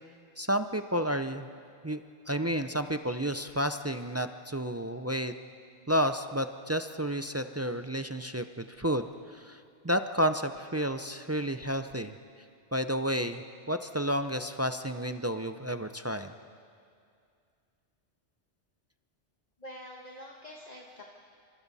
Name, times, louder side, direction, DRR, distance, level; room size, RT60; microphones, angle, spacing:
voice 1, 0.4-1.5 1.8-2.0 2.3-5.3 5.9-12.1 12.7-16.3, equal, 25° right, 8 dB, 0.3 m, -31 dB
voice 2, 19.6-21.0, equal, 35° left, -1 dB, 1.6 m, -46 dB
28.5 x 26.5 x 4.1 m, 2.3 s
omnidirectional pair, 1.2 m